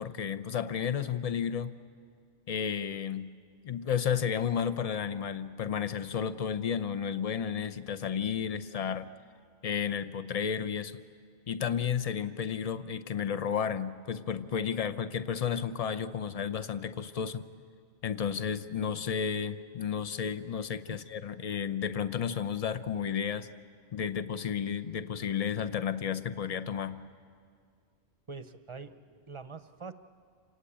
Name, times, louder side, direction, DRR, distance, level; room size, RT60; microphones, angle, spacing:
voice 1, 0.0-1.7 2.5-3.4 3.6-9.1 9.6-11.0 11.5-17.5 18.0-23.5 23.9-27.0, left 7 dB, 40° left, 11 dB, 0.7 m, -32 dB
voice 2, 28.3-29.9, right 4 dB, 30° right, 10 dB, 0.8 m, -44 dB
28.0 x 18.0 x 8.6 m, 2.2 s
omnidirectional pair, 1.2 m